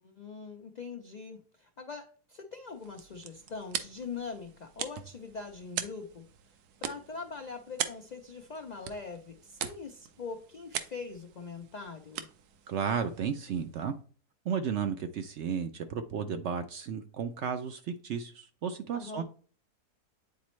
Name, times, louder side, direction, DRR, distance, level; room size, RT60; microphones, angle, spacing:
voice 1, 0.0-6.3 6.8-12.3 18.9-19.2, left 4 dB, 70° left, 0.4 m, -42 dB
sound 1, 2.7-13.9, right 9 dB, 80° right, 1.2 m, -42 dB
voice 2, 12.7-13.9 14.5-19.2, right 7 dB, 65° right, 0.7 m, -33 dB
9.4 x 4.1 x 3.1 m
omnidirectional pair, 1.6 m